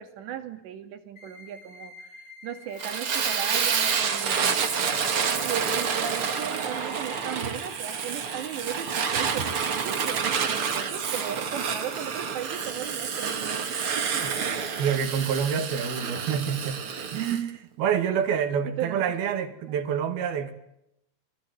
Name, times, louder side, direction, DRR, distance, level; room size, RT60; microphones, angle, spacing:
voice 1, 0.0-4.6 5.3-14.6 17.3-17.4 18.7-19.5, right 9 dB, 80° right, 4.5 m, -37 dB
sound 1, 1.2-7.2, left 2 dB, 25° left, 2.5 m, -47 dB
Fire, 2.8-17.4, right 6 dB, 45° right, 2.1 m, -28 dB
voice 2, 14.2-20.5, right 8 dB, 65° right, 3.6 m, -28 dB
28.5 x 22.0 x 9.4 m
omnidirectional pair, 4.9 m